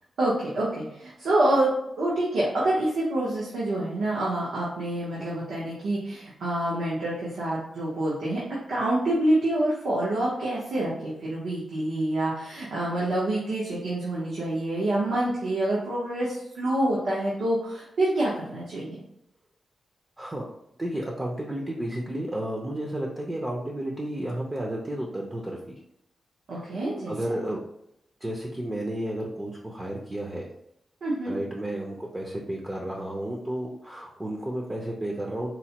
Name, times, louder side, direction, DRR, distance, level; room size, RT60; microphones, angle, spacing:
voice 1, 0.2-1.7 2.0-8.4 8.7-19.0 26.5-27.1 31.0-31.3, right 1 dB, 85° right, -6 dB, 0.9 m, -27 dB
voice 2, 20.8-25.6 26.5-26.8 27.1-27.6 28.2-30.5 31.2-35.5, right 1 dB, 15° right, -1 dB, 0.4 m, -32 dB
4.1 x 2.1 x 2.8 m, 0.77 s
wide cardioid pair, 160°, 0 cm